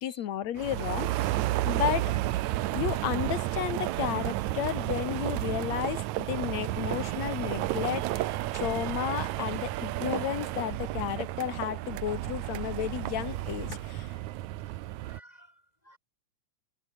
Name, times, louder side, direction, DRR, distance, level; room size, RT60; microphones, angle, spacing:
voice 1, 0.0-2.1 2.7-8.3 8.5-14.1, left 11 dB, 60° left, 2.5 m, -33 dB
sound 1, 0.6-15.2, right 16 dB, 75° right, 2.0 m, -32 dB
voice 2, 14.6-16.0, equal, 10° left, 3.9 m, -57 dB
omnidirectional pair, 3.7 m